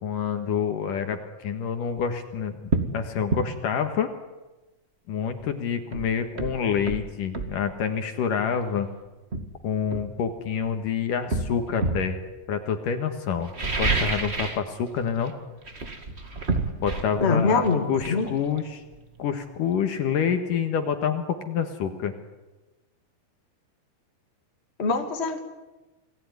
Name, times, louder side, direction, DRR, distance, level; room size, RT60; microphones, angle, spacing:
voice 1, 0.0-4.1 5.1-8.9 9.6-12.2 12.5-15.3 16.8-17.6 17.9-18.8 19.2-22.1, left 7 dB, 65° left, 7 dB, 2.9 m, -27 dB
sound 1, 1.9-2.1 2.7-2.9 3.3-3.5 5.4-5.5 5.9-7.6 8.6-8.8 9.3-10.7 11.3-12.1 13.4-14.7 14.9-15.3 15.6-19.2 19.5-19.6, right 3 dB, 30° right, 1.2 m, -29 dB
voice 2, 17.2-18.3 24.8-25.4, left 4 dB, 20° left, 4 dB, 2.0 m, -23 dB
29.0 x 19.5 x 9.6 m, 1.1 s
omnidirectional pair, 4.6 m